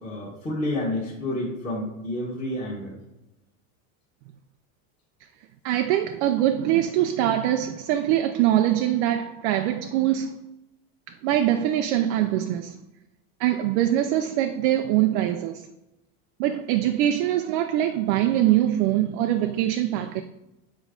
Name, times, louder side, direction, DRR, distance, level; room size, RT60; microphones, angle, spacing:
voice 1, 0.0-2.9, left 1 dB, 15° left, 1.3 m, -29 dB
voice 2, 5.6-10.3 11.1-12.8 13.4-15.7 16.4-20.2, right 12 dB, 55° right, 0.5 m, -23 dB
7.4 x 4.7 x 3.7 m
supercardioid pair, 150°, 43 cm